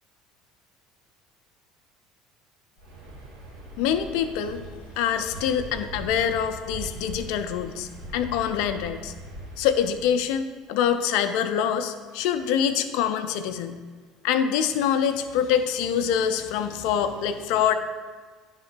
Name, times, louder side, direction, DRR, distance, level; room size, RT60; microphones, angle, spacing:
Waves surf, 2.8-10.1, right 2 dB, 80° right, 1.4 m, -41 dB
voice 1, 3.8-4.7 5.0-9.1 9.6-13.8 14.2-17.7, left 8 dB, 65° left, 9 dB, 0.4 m, -25 dB
10.0 x 3.7 x 4.4 m, 1.5 s
figure-of-eight pair, 65°, 0 cm